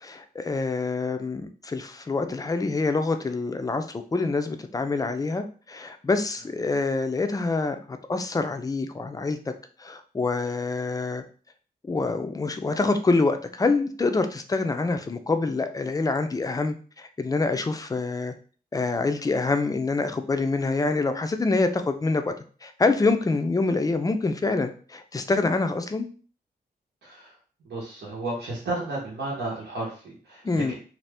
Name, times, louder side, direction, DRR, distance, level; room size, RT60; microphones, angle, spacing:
voice 1, 0.0-3.8 4.1-9.5 9.8-11.2 11.9-18.3 18.7-22.3 22.6-26.1 30.4-30.7, left 3 dB, 20° left, 8 dB, 0.4 m, -26 dB
voice 2, 27.0-27.3 27.6-30.7, right 2 dB, 85° right, -6 dB, 0.9 m, -33 dB
2.7 x 2.4 x 3.3 m, 0.40 s
wide cardioid pair, 100°, 17 cm